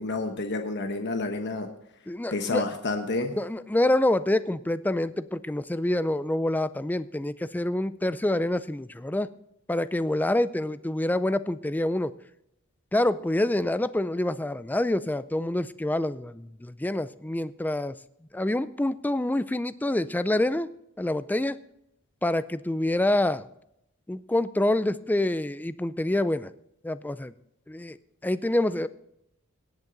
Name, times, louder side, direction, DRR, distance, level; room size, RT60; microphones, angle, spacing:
voice 1, 0.0-1.7 2.3-3.4, left 2 dB, 55° left, 5 dB, 1.1 m, -29 dB
voice 2, 2.1-2.6 3.4-9.3 9.7-12.1 12.9-18.0 18.3-20.7 21.0-21.6 22.2-23.5 24.1-26.5 26.8-27.3 27.7-28.0 28.2-28.9, left 1 dB, 10° left, 15 dB, 0.4 m, -26 dB
18.0 x 8.2 x 3.9 m, 0.77 s
head